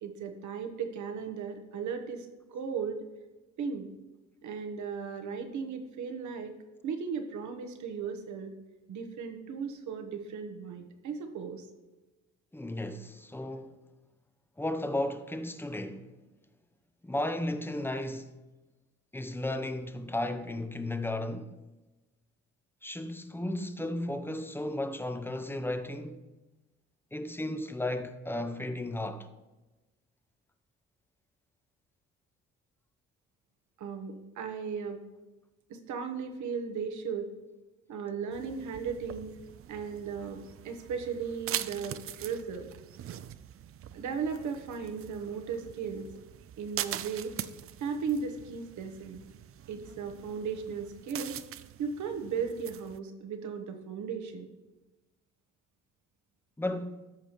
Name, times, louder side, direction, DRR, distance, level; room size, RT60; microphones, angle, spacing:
voice 1, 0.0-3.1 3.6-3.9 4.4-6.5 6.8-8.5 8.9-11.7 33.8-35.0 35.7-37.3 37.9-39.3 39.7-42.6 43.9-46.1 46.6-47.3 47.8-49.2 49.7-51.4 51.8-54.5, right 6 dB, 75° right, 1.1 m, -36 dB
voice 2, 12.5-13.8 14.6-16.1 17.0-18.4 19.1-21.5 22.8-26.2 27.1-29.3 56.6-57.0, left 1 dB, 5° left, 0.6 m, -34 dB
sound 1, 38.3-53.0, right 11 dB, 50° right, 0.4 m, -43 dB
13.5 x 5.0 x 3.0 m
cardioid pair, 90°, 30 cm